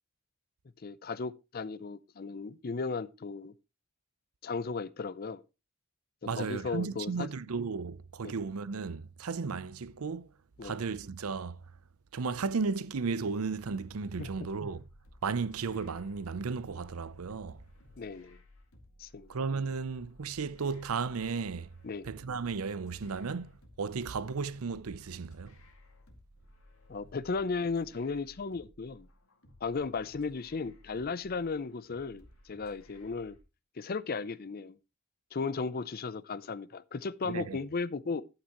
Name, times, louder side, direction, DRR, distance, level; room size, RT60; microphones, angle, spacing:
voice 1, 0.8-3.5 4.4-5.4 6.4-7.3 8.2-8.3 10.6-10.8 14.2-14.3 18.0-18.4 19.0-19.3 21.8-22.1 26.9-29.1 29.6-33.4 33.8-34.8 35.3-38.2, left 4 dB, 45° left, 0.5 m, -35 dB
voice 2, 6.3-10.3 10.6-11.6 12.1-14.8 15.2-17.6 19.3-21.7 22.0-23.5 23.8-25.5 37.2-37.6, right 5 dB, 90° right, 0.6 m, -34 dB
sound 1, 13.8-33.4, left 1 dB, 75° left, 2.1 m, -58 dB
11.5 x 8.8 x 3.0 m
head